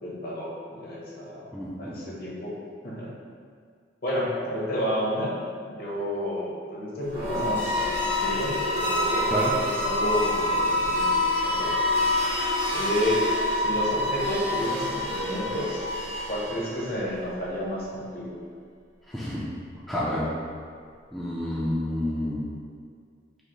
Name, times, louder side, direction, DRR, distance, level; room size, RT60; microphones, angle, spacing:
voice 1, 0.0-1.5 1.8-2.5 2.8-3.1 4.0-5.3 5.7-11.1 11.4-11.7 12.7-13.3 13.5-15.9 16.3-18.3, left 1 dB, 50° left, -5 dB, 0.8 m, -31 dB
voice 2, 1.5-1.9 9.3-9.5 19.1-19.4 19.9-20.2 21.1-22.4, left 1 dB, ahead, -9 dB, 0.3 m, -29 dB
sound 1, 7.0-17.0, left 1 dB, 50° right, 0.9 m, -26 dB
5.2 x 2.0 x 2.9 m, 2.1 s
head